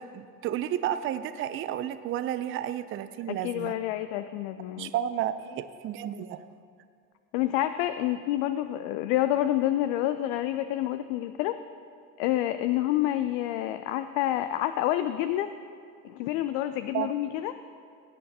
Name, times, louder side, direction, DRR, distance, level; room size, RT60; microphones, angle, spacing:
voice 1, 0.0-3.7 4.8-6.4 16.9-17.1, right 11 dB, 30° right, 12 dB, 0.4 m, -32 dB
voice 2, 3.3-4.9 7.3-11.6 12.2-15.5 16.0-17.5, left 13 dB, 55° left, 11 dB, 0.5 m, -28 dB
19.0 x 8.4 x 2.8 m, 2.2 s
hypercardioid pair, 65°, 47 cm